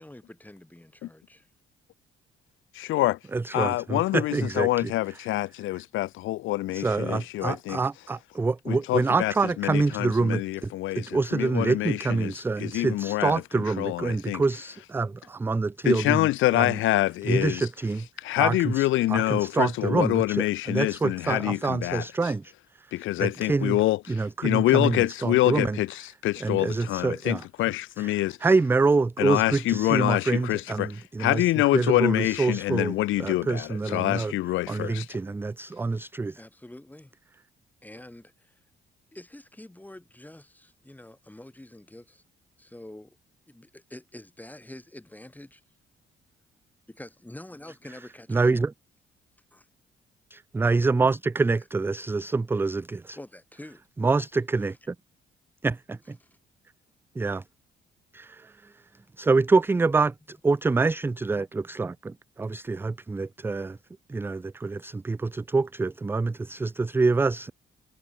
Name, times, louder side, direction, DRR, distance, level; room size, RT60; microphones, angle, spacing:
voice 1, 0.0-1.5 35.9-36.1 36.4-37.1 37.8-38.6 39.1-42.2 42.6-43.2 43.5-45.6 46.9-48.5 49.5-49.7 53.2-53.9 56.2-56.3, left 1 dB, 10° left, 4.4 m, -46 dB
voice 2, 2.7-3.2 3.5-7.8 8.7-9.3 9.6-14.4 15.8-17.7 18.2-22.0 22.9-28.4 29.2-30.9 31.2-35.1, left 16 dB, 80° left, 0.6 m, -26 dB
voice 3, 3.3-4.9 6.7-16.3 16.5-16.8 17.3-18.1 18.4-22.5 23.2-23.8 24.1-25.8 26.4-27.4 28.0-31.5 31.7-34.3 34.7-36.4 48.3-48.7 50.3-53.2 54.0-54.9 55.6-56.2 57.2-57.4 58.1-58.5 59.2-63.8 64.1-67.5, right 3 dB, 10° right, 0.3 m, -26 dB
cardioid pair, 90°, 20 cm